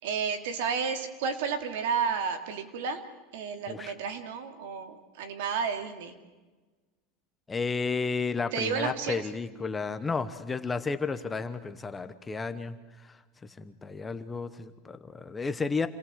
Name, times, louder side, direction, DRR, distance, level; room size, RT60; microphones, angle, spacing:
voice 1, 0.0-3.0 3.3-6.1 8.5-9.3, right 6 dB, 80° right, 7 dB, 3.1 m, -31 dB
voice 2, 7.5-12.8 13.6-15.9, left 4 dB, 15° left, 10 dB, 1.1 m, -32 dB
28.0 x 19.0 x 8.1 m, 1.2 s
supercardioid pair, 160°, 0 cm